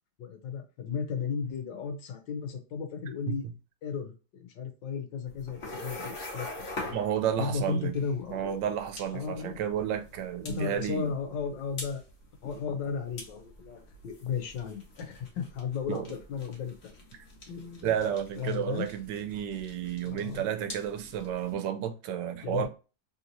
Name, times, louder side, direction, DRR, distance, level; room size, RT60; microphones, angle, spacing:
voice 1, 0.2-3.5 3.8-6.5 6.8-7.0 7.4-8.5 9.1-9.6 10.4-12.0 12.4-16.8 17.5-18.0 18.3-18.9 20.0-20.4 22.4-22.7, left 6 dB, 90° left, 1.5 m, -35 dB
sound 1, 5.3-21.5, left 2 dB, 50° left, 1.3 m, -45 dB
voice 2, 6.9-8.0 8.3-11.1 15.9-16.1 17.8-22.7, right 9 dB, 80° right, 1.2 m, -31 dB
3.5 x 2.9 x 2.6 m
omnidirectional pair, 1.9 m